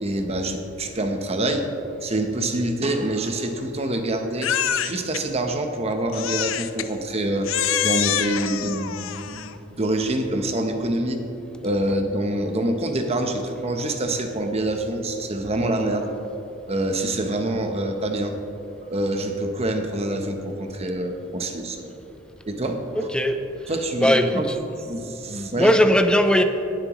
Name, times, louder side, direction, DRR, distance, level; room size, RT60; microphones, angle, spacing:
voice 1, 0.0-1.7 2.0-4.5 4.8-7.5 7.8-11.2 11.6-16.1 16.7-18.4 18.9-21.9 22.4-23.1 23.7-24.5 24.8-25.7, right 1 dB, 30° right, 5 dB, 0.9 m, -26 dB
Crying sobbing, 4.4-5.2 6.1-6.9 7.4-9.6, left 10 dB, 80° left, 0.5 m, -26 dB
voice 2, 23.0-23.4 24.0-24.6 25.6-26.4, equal, 5° left, 7 dB, 0.5 m, -18 dB
19.0 x 7.5 x 3.1 m, 3.0 s
head